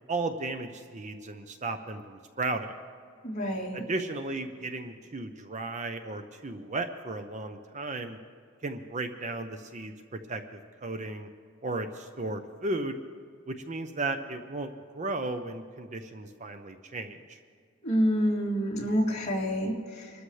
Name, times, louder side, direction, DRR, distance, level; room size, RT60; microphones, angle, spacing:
voice 1, 0.1-2.7 3.7-8.2 8.6-9.9 10.3-11.3 11.6-13.0 13.5-17.4, right 2 dB, 35° right, 7 dB, 0.7 m, -35 dB
voice 2, 3.2-3.8 17.8-20.1, equal, 30° left, -4 dB, 2.7 m, -28 dB
25.0 x 13.0 x 3.3 m, 2.2 s
head